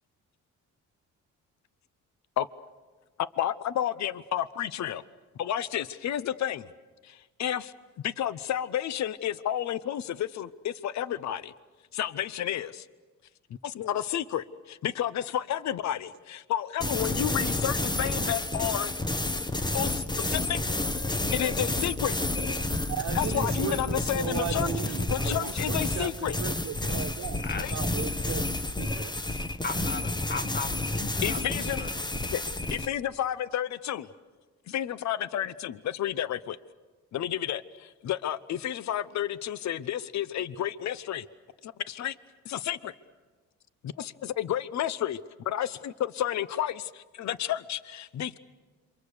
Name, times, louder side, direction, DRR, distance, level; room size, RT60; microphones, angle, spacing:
voice 1, 3.4-5.0 5.4-6.7 7.0-7.7 8.0-11.5 11.9-12.9 13.6-18.9 19.7-20.6 21.1-22.2 23.1-26.4 27.5-27.7 31.2-31.9 32.3-32.4 32.7-34.1 34.7-36.6 37.1-41.3 41.6-42.2 42.4-42.9 43.8-45.2 45.4-48.4, left 11 dB, 65° left, 16 dB, 0.9 m, -31 dB
sound 1, 16.8-32.9, left 2 dB, 15° left, 1.2 m, -30 dB
voice 2, 22.9-27.4 27.7-29.1, right 10 dB, 65° right, 8 dB, 1.2 m, -36 dB
voice 3, 27.4-27.8 29.6-31.9, left 4 dB, 35° left, 12 dB, 1.3 m, -37 dB
27.5 x 24.5 x 6.7 m, 1.3 s
cardioid pair, 90°, 30 cm